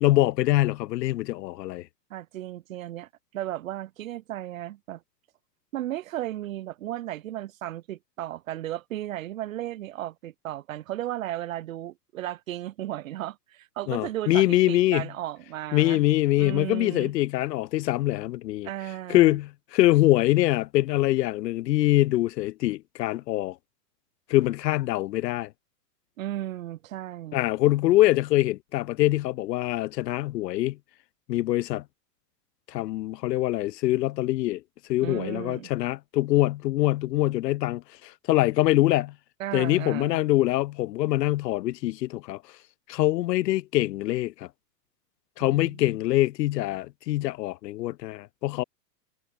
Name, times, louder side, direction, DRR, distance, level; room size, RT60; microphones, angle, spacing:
voice 1, 0.0-1.9 13.9-15.1 15.7-18.7 19.1-23.6 24.3-25.5 27.3-30.8 31.3-31.8 32.7-34.6 34.9-39.1 39.5-42.4 42.9-44.5 45.4-48.6, left 16 dB, 85° left, 0.6 m, -24 dB
voice 2, 2.1-5.0 5.7-16.0 16.4-17.1 18.6-19.4 26.2-27.4 35.0-35.7 39.4-40.2 45.4-46.0, right 13 dB, 55° right, 2.1 m, -35 dB
supercardioid pair, 175°, 49 cm